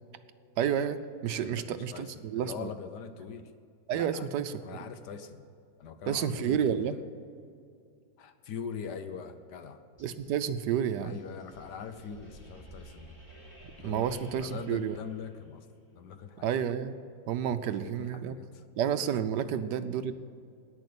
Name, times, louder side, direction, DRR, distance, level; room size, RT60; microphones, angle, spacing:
voice 1, 0.6-2.7 3.9-4.6 6.1-7.0 10.0-11.2 13.8-15.0 16.4-16.9 17.3-18.4 18.8-20.1, right 8 dB, 75° right, 11 dB, 1.2 m, -30 dB
voice 2, 1.4-3.5 3.9-4.3 4.6-5.4 5.8-6.9 8.2-9.8 11.0-13.2 13.8-15.6 15.9-16.6 17.4-18.6 19.4-19.5, left 6 dB, 70° left, 9 dB, 1.4 m, -43 dB
sound 1, 10.0-15.6, right 1 dB, 15° left, 3.8 m, -53 dB
10.5 x 9.6 x 8.5 m, 2.3 s
omnidirectional pair, 2.0 m